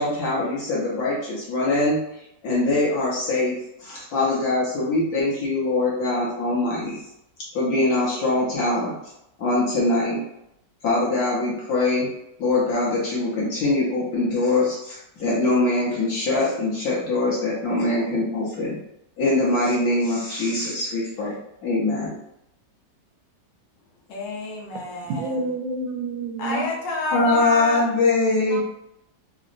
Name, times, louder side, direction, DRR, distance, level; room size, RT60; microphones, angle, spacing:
voice 1, 0.0-2.0 2.4-7.0 7.5-8.9 9.4-10.2 10.8-12.1 12.4-18.8 19.2-21.3 21.6-22.1 27.1-28.6, left 2 dB, 60° left, -6 dB, 1.3 m, -23 dB
voice 2, 24.1-25.4 26.4-27.9, left 2 dB, 85° left, -2 dB, 1.4 m, -29 dB
voice 3, 25.1-26.7 28.4-28.6, right 3 dB, 75° right, 2 dB, 1.2 m, -29 dB
3.8 x 2.0 x 2.5 m, 0.82 s
omnidirectional pair, 2.0 m